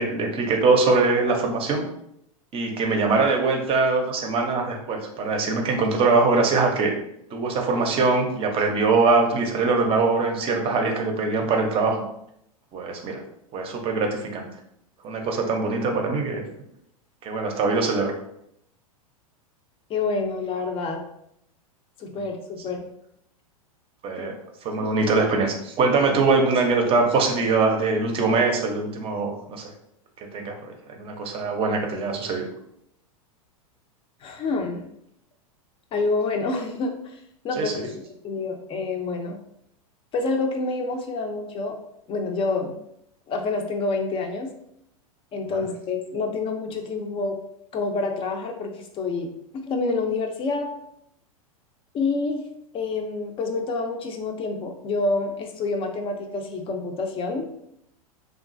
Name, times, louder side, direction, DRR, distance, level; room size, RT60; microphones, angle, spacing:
voice 1, 0.0-1.8 2.5-6.9 7.3-12.0 12.7-13.2 13.5-14.5 15.0-16.4 17.2-18.1 24.0-24.3 24.6-29.7 30.3-30.7 31.0-32.4 37.6-37.9 45.5-45.6, right 3 dB, 30° right, 3 dB, 0.6 m, -22 dB
voice 2, 19.9-21.0 22.0-22.8 24.2-24.3 24.8-24.9 34.2-34.8 35.9-37.2 37.4-39.4 40.1-41.8 42.1-42.7 43.3-44.5 45.3-47.4 47.7-50.7 51.9-52.4 52.7-57.4, left 3 dB, 30° left, 3 dB, 0.5 m, -27 dB
2.9 x 2.3 x 2.5 m, 0.75 s
hypercardioid pair, 105°, 19 cm